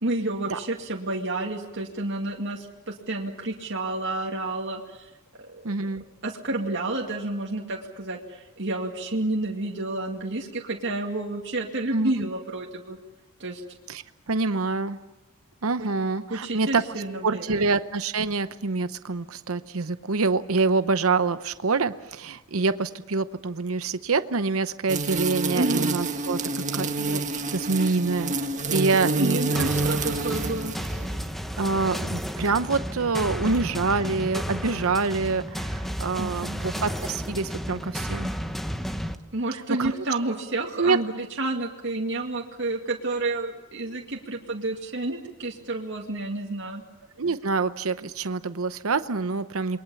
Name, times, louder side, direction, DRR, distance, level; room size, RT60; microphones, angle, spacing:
voice 1, 0.0-5.1 5.5-5.6 6.2-13.0 13.4-13.6 15.8-15.9 16.3-17.6 25.5-25.9 29.0-30.7 36.2-36.8 39.3-46.8, right 2 dB, 60° right, -1 dB, 2.3 m, -30 dB
voice 2, 5.6-6.0 11.9-12.3 13.9-15.0 15.6-16.8 17.2-26.4 26.7-27.2 27.5-28.4 28.7-29.6 30.3-30.4 31.6-38.3 39.5-40.4 40.8-41.0 47.2-49.8, right 4 dB, 75° right, 12 dB, 0.8 m, -26 dB
sound 1, 24.9-31.3, right 3 dB, 35° right, 1.6 m, -28 dB
sound 2, 29.5-39.1, equal, ahead, 1.2 m, -32 dB
28.0 x 22.0 x 7.1 m, 1.0 s
head